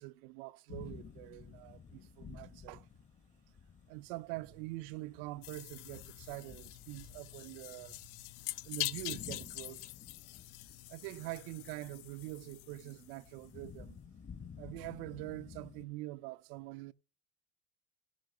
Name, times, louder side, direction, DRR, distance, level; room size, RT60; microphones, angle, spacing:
voice 1, 0.0-2.9 3.9-8.0 8.6-9.9 10.9-14.0 14.6-16.9, right 20 dB, 75° right, 0.6 m, -45 dB
sound 1, 0.7-15.9, left 6 dB, 25° left, 1.0 m, -54 dB
sound 2, 5.4-13.5, left 19 dB, 80° left, 0.6 m, -45 dB
16.5 x 5.8 x 6.4 m
cardioid pair, 150°, 30 cm